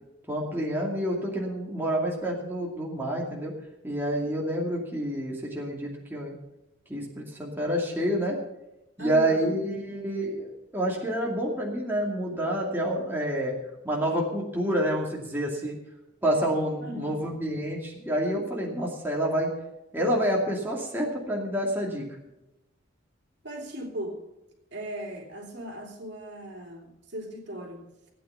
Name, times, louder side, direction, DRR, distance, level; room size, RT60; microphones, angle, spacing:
voice 1, 0.3-3.5 3.8-6.3 6.9-8.4 9.0-13.5 13.8-15.8 16.2-19.5 19.9-22.0, right 1 dB, 10° right, -3 dB, 2.5 m, -28 dB
voice 2, 9.0-9.5 16.8-17.2 23.4-24.2 24.7-27.8, equal, 60° right, 1 dB, 3.1 m, -38 dB
16.5 x 9.2 x 5.7 m, 0.93 s
head